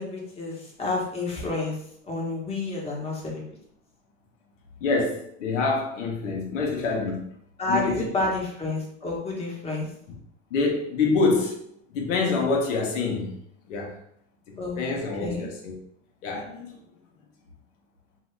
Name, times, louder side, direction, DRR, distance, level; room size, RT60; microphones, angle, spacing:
voice 1, 0.0-1.7 2.1-3.4 7.6-9.9 14.6-15.5, left 2 dB, 15° left, -4 dB, 1.0 m, -30 dB
voice 2, 4.8-7.3 7.7-8.2 10.5-11.7 11.9-13.4 13.7-13.9 14.8-15.8 16.2-16.8, left 4 dB, 85° left, 0 dB, 0.8 m, -26 dB
2.6 x 2.4 x 3.2 m, 0.69 s
supercardioid pair, 115°, 36 cm